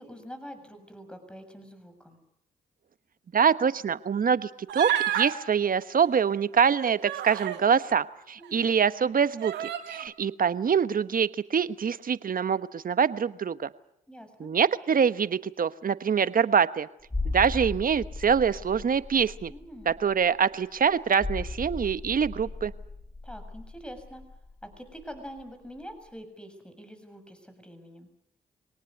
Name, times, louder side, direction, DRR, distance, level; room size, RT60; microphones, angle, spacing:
voice 1, 0.0-2.2 8.4-8.7 14.1-14.5 19.5-19.9 23.2-24.2 24.6-28.1, equal, 5° left, 9 dB, 7.0 m, -45 dB
voice 2, 3.3-4.9 5.1-13.7 14.4-16.9 17.3-19.5 19.9-22.7, right 7 dB, 55° right, 14 dB, 1.2 m, -25 dB
Human voice, 4.7-5.3 6.5-7.6 8.4-8.5 9.4-10.1, right 11 dB, 80° right, 2.0 m, -30 dB
sound 1, 17.1-25.5 25.8-25.9, left 2 dB, 20° left, 1.7 m, -37 dB
24.0 x 18.5 x 9.6 m, 0.77 s
supercardioid pair, 50°, 18 cm